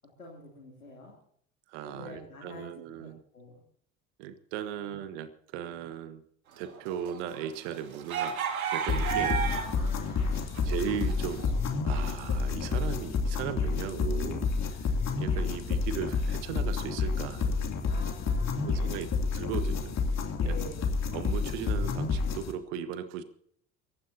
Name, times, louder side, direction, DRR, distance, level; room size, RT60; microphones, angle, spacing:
voice 1, 0.2-1.2 1.8-2.7 3.0-3.6 4.7-4.8 5.7-5.8 9.4-10.6 13.7-14.5 17.8-19.2 20.3-21.0, left 2 dB, 90° left, -3 dB, 3.1 m, -46 dB
voice 2, 1.7-3.2 4.2-6.2 6.6-8.4 8.7-9.5 10.6-14.4 15.2-17.7 18.6-20.0 20.4-20.6 21.1-23.2, right 9 dB, 65° right, 11 dB, 1.4 m, -37 dB
sound 1, 6.7-9.9 10.2-11.5, right 7 dB, 80° right, 2.0 m, -32 dB
sound 2, 8.9-22.5, left 4 dB, 40° left, 2.9 m, -29 dB
28.5 x 15.0 x 2.8 m, 0.65 s
figure-of-eight pair, 60°, 41 cm